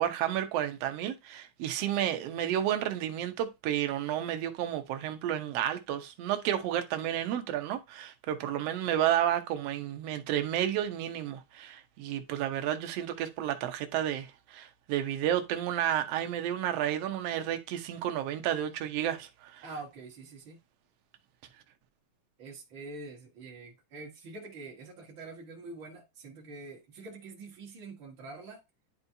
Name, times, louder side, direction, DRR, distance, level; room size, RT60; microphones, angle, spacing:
voice 1, 0.0-19.6, right 11 dB, 65° right, 1.7 m, -31 dB
voice 2, 19.6-20.6 22.4-28.6, right 3 dB, 50° right, 1.6 m, -45 dB
11.0 x 4.2 x 2.7 m
omnidirectional pair, 3.7 m